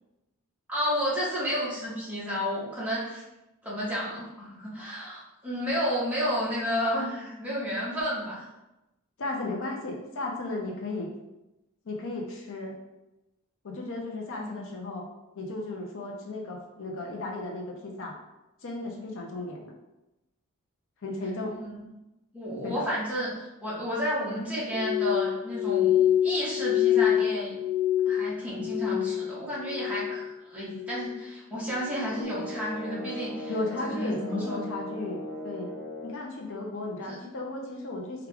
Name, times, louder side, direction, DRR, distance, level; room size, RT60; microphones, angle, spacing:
voice 1, 0.7-3.2 3.6-8.5 14.3-14.6 21.6-21.8 22.3-23.3 23.6-27.6 28.1-33.5 33.8-34.6 37.1-37.3, equal, 5° right, -8 dB, 1.1 m, -31 dB
voice 2, 9.2-11.1 11.9-12.7 13.6-15.0 15.4-18.2 18.6-19.7 21.0-21.6 22.6-22.9 33.5-35.7 36.0-38.3, left 2 dB, 60° left, 0 dB, 0.6 m, -35 dB
Glass, 24.7-29.3 29.6-30.2 30.6-31.2 31.8-32.0, left 11 dB, 65° right, 0.6 m, -26 dB
sound 1, 32.0-36.3, left 1 dB, 10° left, 0.6 m, -38 dB
4.7 x 2.3 x 3.5 m, 0.96 s
head